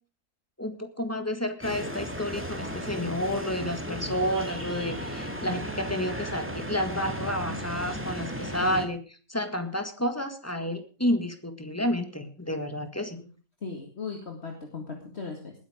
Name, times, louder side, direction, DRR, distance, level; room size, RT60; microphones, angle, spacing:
voice 1, 0.6-13.2, left 1 dB, 10° left, 7 dB, 1.7 m, -30 dB
sound 1, 1.6-8.9, equal, 10° right, 2.0 m, -35 dB
voice 2, 13.6-15.5, left 4 dB, 45° left, 2 dB, 2.3 m, -37 dB
20.0 x 8.8 x 5.0 m, 0.37 s
omnidirectional pair, 1.6 m